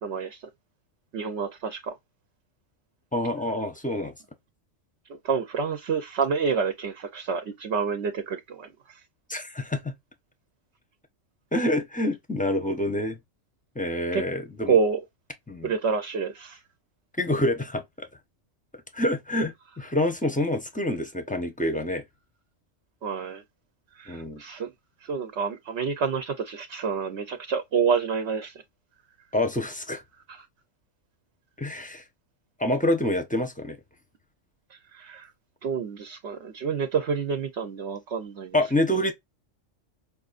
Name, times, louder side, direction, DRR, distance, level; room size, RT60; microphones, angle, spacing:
voice 1, 0.0-0.4 1.1-2.0 5.1-9.0 14.1-14.2 14.7-15.0 15.6-16.6 23.0-23.4 24.0-24.7 25.0-28.5 34.9-35.3 35.6-38.6, right 6 dB, 65° right, 0.9 m, -28 dB
voice 2, 3.1-4.1 9.3-9.9 11.5-13.2 13.7-14.8 15.5-15.7 17.2-18.1 18.9-22.0 24.1-24.4 29.3-30.0 31.6-32.0 32.6-33.8 38.5-39.1, left 1 dB, 10° left, 0.7 m, -27 dB
5.4 x 2.4 x 2.5 m
omnidirectional pair, 1.3 m